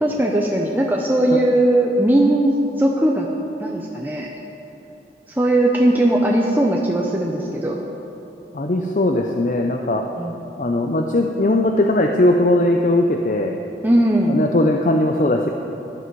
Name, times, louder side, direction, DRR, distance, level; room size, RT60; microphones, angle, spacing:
voice 1, 0.0-2.5 2.8-3.3 3.6-4.3 5.3-7.8 10.2-10.3 13.8-14.4, right 1 dB, 10° right, -1 dB, 0.7 m, -18 dB
voice 2, 8.5-10.0 10.6-13.6 14.3-15.5, left 1 dB, 45° left, 3 dB, 0.6 m, -19 dB
14.0 x 11.0 x 4.7 m, 3.0 s
head